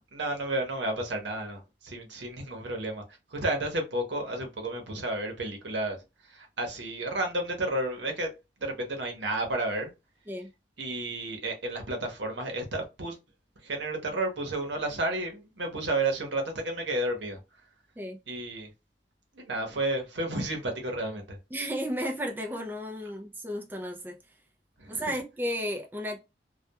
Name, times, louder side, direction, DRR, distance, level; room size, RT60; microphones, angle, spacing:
voice 1, 0.1-3.0 3.3-6.0 6.3-8.3 8.6-9.9 10.8-13.2 13.6-17.4 18.3-18.7 19.3-21.4 24.8-25.0, right 2 dB, 80° right, 0.8 m, -31 dB
voice 2, 21.5-24.1 24.9-26.2, equal, 10° right, 0.3 m, -33 dB
2.2 x 2.2 x 2.8 m
head